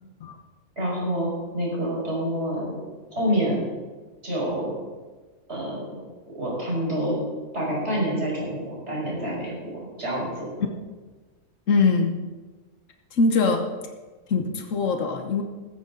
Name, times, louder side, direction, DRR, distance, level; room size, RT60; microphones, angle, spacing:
voice 1, 0.8-1.3 1.5-3.6 4.2-4.7 5.5-6.0 6.3-7.2 7.5-9.7 10.0-10.5, equal, 55° right, -4 dB, 5.7 m, -27 dB
voice 2, 11.7-12.2 13.1-13.6 14.3-15.4, left 4 dB, 75° left, 4 dB, 1.4 m, -22 dB
15.5 x 14.0 x 3.9 m, 1.3 s
omnidirectional pair, 1.3 m